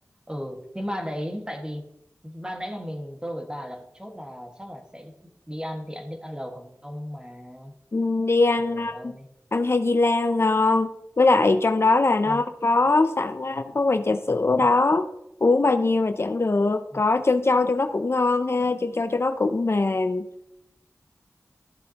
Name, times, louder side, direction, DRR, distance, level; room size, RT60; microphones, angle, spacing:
voice 1, 0.3-1.9 2.2-7.7 8.6-9.3 12.2-12.4 16.9-17.0 18.6-19.1, equal, 15° right, 3 dB, 1.6 m, -36 dB
voice 2, 7.9-9.1 9.5-15.1 15.4-20.3, left 3 dB, 50° left, 9 dB, 0.5 m, -22 dB
14.5 x 7.5 x 2.9 m, 0.85 s
wide cardioid pair, 60°, 6 cm